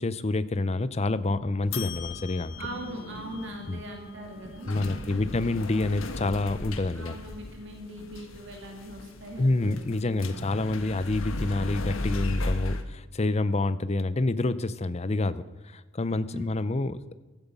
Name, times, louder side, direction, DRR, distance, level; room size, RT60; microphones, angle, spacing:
voice 1, 0.0-2.6 3.7-3.8 4.6-7.2 9.4-17.1, left 2 dB, 30° left, 14 dB, 0.6 m, -28 dB
sound 1, 1.6-12.8, left 2 dB, 90° left, 1.4 m, -36 dB
voice 2, 2.6-5.4 7.0-9.8 10.0-10.5 16.3-16.5, right 1 dB, 60° right, 2 dB, 2.2 m, -41 dB
15.5 x 13.0 x 5.5 m, 1.2 s
head